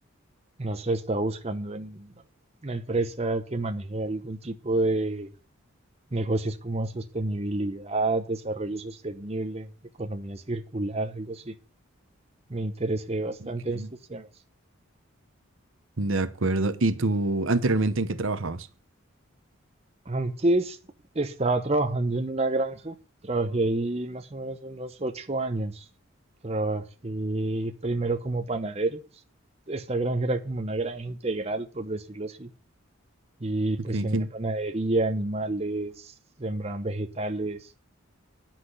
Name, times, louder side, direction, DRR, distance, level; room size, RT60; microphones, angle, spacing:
voice 1, 0.6-2.1 2.6-5.3 6.1-9.7 10.0-11.5 12.5-13.8 14.1-14.3 20.1-20.8 21.1-23.0 23.2-25.9 26.4-29.0 29.7-32.5 33.4-37.7, right 2 dB, 30° right, 0.8 m, -29 dB
voice 2, 16.0-18.7 33.9-34.3, right 2 dB, 70° right, 1.0 m, -25 dB
10.0 x 6.0 x 8.1 m
head